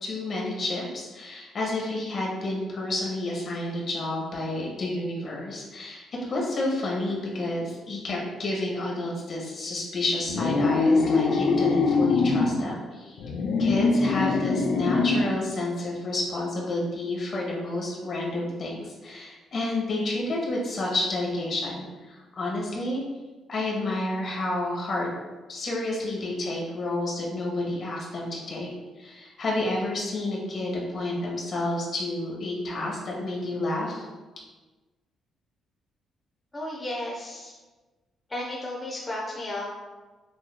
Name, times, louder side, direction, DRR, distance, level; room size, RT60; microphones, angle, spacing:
voice 1, 0.0-13.3 13.6-23.0 23.5-25.1 25.5-28.7 29.0-34.0, left 2 dB, 50° left, -3 dB, 1.4 m, -30 dB
sound 1, 10.3-12.6 13.2-15.4, left 3 dB, 75° left, 0.5 m, -23 dB
voice 2, 36.5-37.5 38.3-39.7, left 1 dB, 25° left, -4 dB, 0.7 m, -33 dB
6.3 x 3.0 x 2.2 m, 1.2 s
cardioid pair, 90°, 0 cm